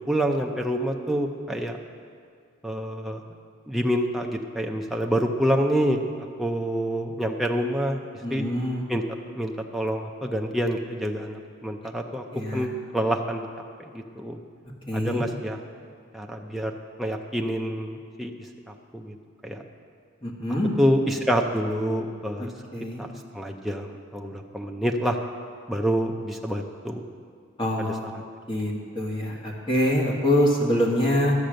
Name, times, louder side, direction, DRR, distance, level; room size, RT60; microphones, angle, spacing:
voice 1, 0.1-1.8 2.6-3.2 3.7-6.0 6.4-8.1 8.3-8.4 8.9-9.0 9.3-12.2 12.5-13.5 13.9-14.4 14.9-15.6 16.1-16.7 17.0-18.3 18.7-19.2 19.4-19.6 20.8-22.5 23.0-23.1 23.3-25.2 25.7-27.0 27.8-27.9, equal, ahead, 1 dB, 0.5 m, -27 dB
voice 2, 8.2-8.8 12.3-12.7 14.9-15.2 20.2-20.7 22.7-23.0 27.6-28.1 28.5-31.3, left 1 dB, 25° left, -2 dB, 1.6 m, -25 dB
12.0 x 7.7 x 6.4 m, 2.1 s
head